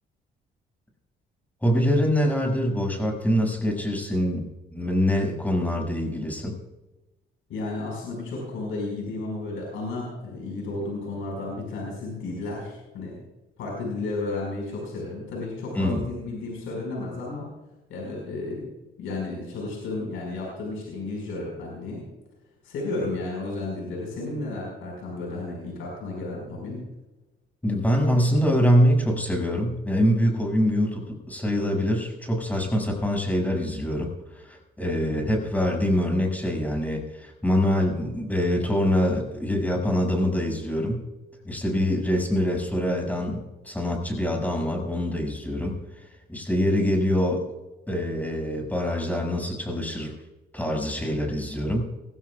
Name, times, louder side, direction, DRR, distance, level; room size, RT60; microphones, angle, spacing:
voice 1, 1.6-4.4 4.7-6.5 15.7-16.0 27.6-41.0 41.4-45.8 46.3-47.4 47.9-50.1 50.5-51.8, equal, 10° left, 1 dB, 6.2 m, -24 dB
voice 2, 7.5-13.2 13.6-17.5 17.9-18.6 19.0-22.0 22.6-26.8 35.0-35.2, left 2 dB, 90° left, -2 dB, 5.4 m, -33 dB
21.0 x 16.0 x 2.4 m, 1.0 s
cardioid pair, 90°, 20 cm